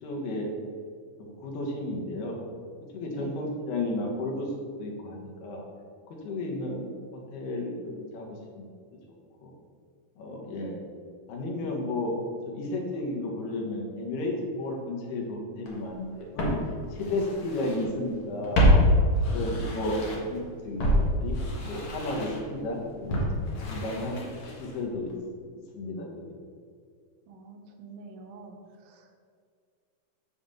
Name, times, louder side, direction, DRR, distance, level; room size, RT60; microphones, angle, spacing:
voice 1, 0.0-0.5 1.2-2.4 2.9-4.5 4.8-5.6 6.1-6.9 7.3-8.7 9.4-9.5 10.2-10.8 11.3-12.1 12.5-16.6 16.9-18.7 19.3-24.2 24.6-25.2 25.7-26.3, left 2 dB, 80° left, -1 dB, 3.3 m, -33 dB
voice 2, 6.4-7.0 27.3-29.2, right 3 dB, 75° right, 4 dB, 2.4 m, -47 dB
Walk footsteps, 15.7-15.8 16.4-17.9 18.1-20.4 20.8-24.8 25.1-25.2, equal, 55° left, 1.5 m, -26 dB
6.9 x 5.8 x 7.0 m, 2.1 s
omnidirectional pair, 4.5 m